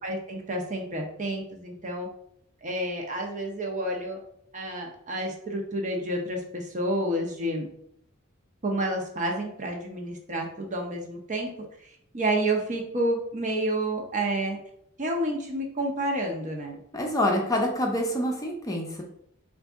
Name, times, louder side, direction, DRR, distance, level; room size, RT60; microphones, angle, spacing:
voice 1, 0.0-2.1 2.6-4.2 4.5-7.7 8.6-11.5 11.8-14.6 15.0-16.8, right 1 dB, 35° right, 1 dB, 0.7 m, -29 dB
voice 2, 16.9-19.0, left 1 dB, 15° left, 0 dB, 0.5 m, -26 dB
4.0 x 2.6 x 3.5 m, 0.72 s
head